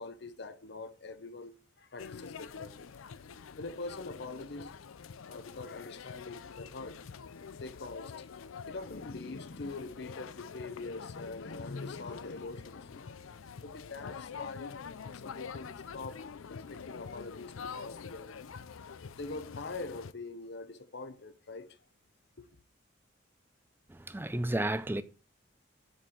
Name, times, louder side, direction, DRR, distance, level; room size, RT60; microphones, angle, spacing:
voice 1, 0.0-2.9 3.4-4.7 5.2-7.0 7.6-8.2 8.7-13.2 13.6-18.4 19.1-21.8 22.4-22.5, left 3 dB, 55° left, 0.7 m, -44 dB
sound 1, 2.0-20.1, left 6 dB, 85° left, 0.5 m, -46 dB
voice 2, 23.9-25.0, right 1 dB, 10° right, 0.4 m, -32 dB
7.4 x 4.4 x 6.3 m
head